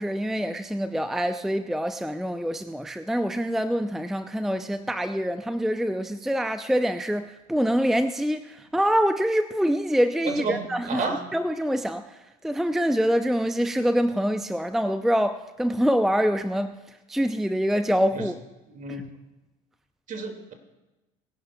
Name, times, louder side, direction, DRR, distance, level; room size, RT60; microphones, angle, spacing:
voice 1, 0.0-11.0 11.3-16.8 17.1-18.3, equal, ahead, 0.5 m, -25 dB
voice 2, 10.2-11.2 18.1-18.3 18.7-19.0 20.1-20.5, right 4 dB, 45° right, 2.2 m, -31 dB
21.0 x 11.0 x 2.3 m
hypercardioid pair, 75°, 18 cm